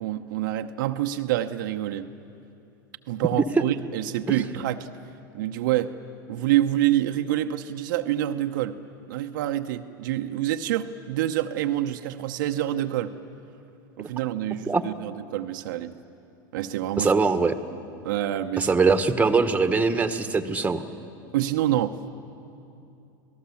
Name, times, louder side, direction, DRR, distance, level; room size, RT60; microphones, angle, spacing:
voice 1, 0.0-2.1 3.1-4.9 5.3-5.9 6.3-8.8 9.1-13.1 14.0-15.9 16.5-17.1 18.0-18.7 21.3-22.1, right 13 dB, 70° right, 6 dB, 0.8 m, -27 dB
voice 2, 17.0-17.5 18.6-20.8, right 4 dB, 15° right, 9 dB, 1.4 m, -22 dB
27.5 x 18.0 x 7.1 m, 2.7 s
hypercardioid pair, 90°, 11 cm